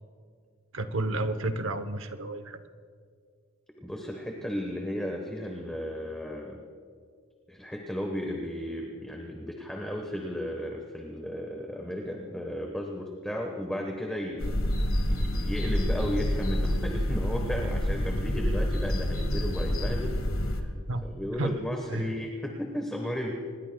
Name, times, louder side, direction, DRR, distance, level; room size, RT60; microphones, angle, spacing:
voice 1, 0.7-2.6 20.9-21.1 21.4-21.6 21.9-22.1, right 2 dB, 60° right, 10 dB, 0.8 m, -31 dB
voice 2, 3.8-6.6 7.5-14.6 15.1-20.2 20.4-20.7 21.0-23.3, equal, 5° left, 1 dB, 1.1 m, -34 dB
sound 1, 14.4-20.6, left 1 dB, 70° left, 1.5 m, -28 dB
26.0 x 20.5 x 2.3 m, 2.1 s
head